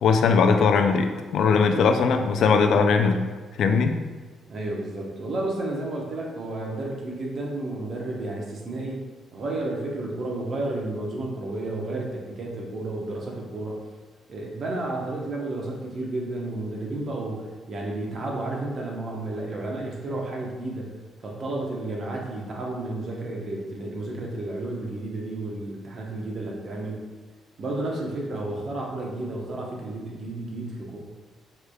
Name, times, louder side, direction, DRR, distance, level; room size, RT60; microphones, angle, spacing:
voice 1, 0.0-3.2 3.6-4.1, left 5 dB, 70° left, 6 dB, 0.4 m, -20 dB
voice 2, 4.5-9.1 9.3-13.8 14.3-20.9 21.2-27.0 27.6-31.0, right 2 dB, 50° right, -1 dB, 1.0 m, -32 dB
6.4 x 3.3 x 2.3 m, 1.4 s
cardioid pair, 90°, 0 cm